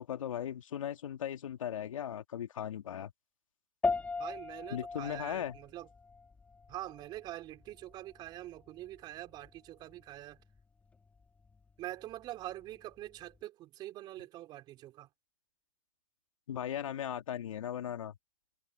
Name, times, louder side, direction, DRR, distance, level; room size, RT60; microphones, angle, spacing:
voice 1, 0.0-3.1 4.7-5.6 16.5-18.2, left 10 dB, 70° left, 2.7 m, -38 dB
sound 1, 3.8-13.4, left 4 dB, 10° left, 2.1 m, -41 dB
voice 2, 4.2-5.9 6.7-10.4 11.8-15.1, right 15 dB, 25° right, 4.8 m, -45 dB
hypercardioid pair, 150°, 17 cm